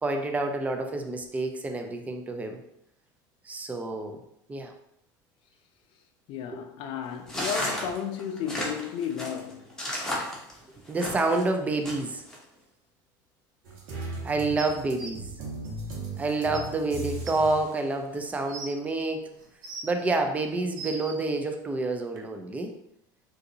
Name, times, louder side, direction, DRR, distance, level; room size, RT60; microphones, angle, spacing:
voice 1, 0.0-2.6 3.5-4.2 4.5-4.7 6.5-6.6 10.9-12.2 14.2-15.3 16.2-19.3 19.8-22.7, right 2 dB, 15° right, 0.4 m, -28 dB
voice 2, 6.3-9.8, left 8 dB, 55° left, 0.5 m, -33 dB
sound 1, 7.3-11.4 11.8-12.4, left 1 dB, 5° left, 1.0 m, -33 dB
sound 2, 13.7-17.7, right 2 dB, 65° right, 1.3 m, -37 dB
sound 3, 14.6-15.1 16.1-16.2 16.5-16.6 17.2-17.3 18.1-18.7 19.4-20.0 20.5-21.2 22.2-22.3, right 4 dB, 85° right, 0.7 m, -40 dB
3.8 x 2.6 x 2.7 m
supercardioid pair, 110°, 11 cm